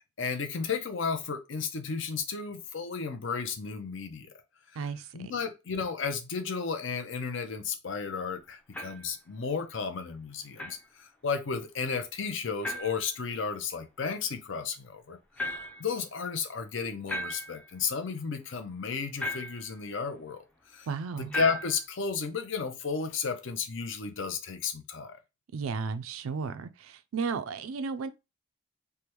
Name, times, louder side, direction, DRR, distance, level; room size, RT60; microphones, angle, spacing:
voice 1, 0.0-4.3 5.1-15.2 15.8-20.4 20.7-20.9 21.2-25.2, left 5 dB, 65° left, 0.6 m, -33 dB
voice 2, 4.8-5.3 20.9-21.4 25.5-28.1, right 5 dB, 85° right, 0.4 m, -34 dB
sound 1, 8.7-9.1 10.6-10.8 12.6-13.0 15.4-15.9 17.1-17.7 19.2-19.7 21.3-21.8, equal, 5° left, 0.4 m, -36 dB
3.4 x 2.1 x 3.0 m
head